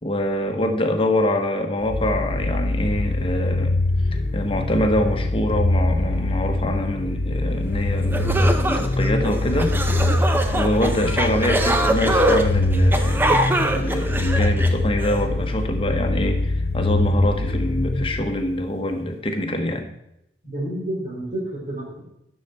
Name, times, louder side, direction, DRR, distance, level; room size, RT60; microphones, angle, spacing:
voice 1, 0.0-3.8 4.1-9.8 10.5-19.9, left 1 dB, 30° left, 5 dB, 1.1 m, -25 dB
sound 1, 1.8-18.7, left 2 dB, 55° left, 0.7 m, -23 dB
sound 2, 7.7-7.8 8.1-15.2, right 1 dB, 10° right, 0.6 m, -23 dB
voice 2, 20.4-22.0, right 1 dB, 50° right, -4 dB, 3.8 m, -29 dB
10.5 x 6.6 x 4.3 m, 0.81 s
head